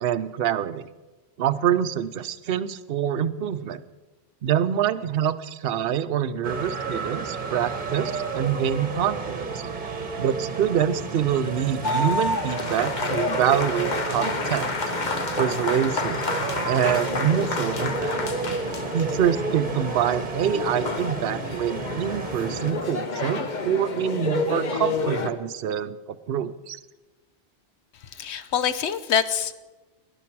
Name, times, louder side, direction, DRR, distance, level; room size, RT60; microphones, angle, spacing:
voice 1, 0.0-0.9 1.4-3.8 4.4-9.6 10.2-14.7 15.4-16.2 16.7-18.1 18.9-26.8, right 9 dB, 65° right, 12 dB, 0.8 m, -25 dB
sound 1, 6.4-22.7, right 4 dB, 45° right, 1.3 m, -32 dB
sound 2, 11.8-25.3, left 3 dB, 45° left, 1.1 m, -29 dB
voice 2, 28.1-29.5, left 8 dB, 85° left, 13 dB, 1.0 m, -25 dB
18.0 x 11.0 x 4.7 m, 1.2 s
omnidirectional pair, 1.1 m